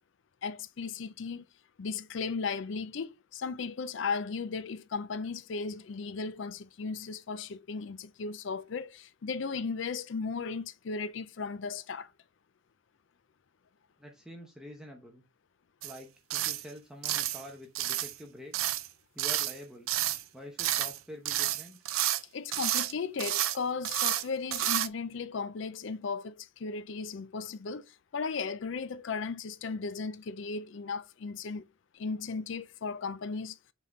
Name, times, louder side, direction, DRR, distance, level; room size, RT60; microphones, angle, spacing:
voice 1, 0.4-1.5 1.8-12.1 22.3-31.6 31.9-33.6, left 4 dB, 60° left, 0.4 m, -36 dB
voice 2, 14.0-15.2 15.8-18.7 19.1-19.9 20.3-21.8, left 1 dB, 5° right, 0.9 m, -47 dB
sound 1, 15.8-16.0 16.3-16.6 17.0-17.4 17.8-18.2 18.5-18.9 19.2-19.6 19.9-20.2 20.6-21.0 21.3-22.2 22.5-22.9 23.2-23.6 23.8-24.2 24.5-24.9, right 13 dB, 80° right, 0.5 m, -30 dB
5.6 x 4.0 x 4.6 m
head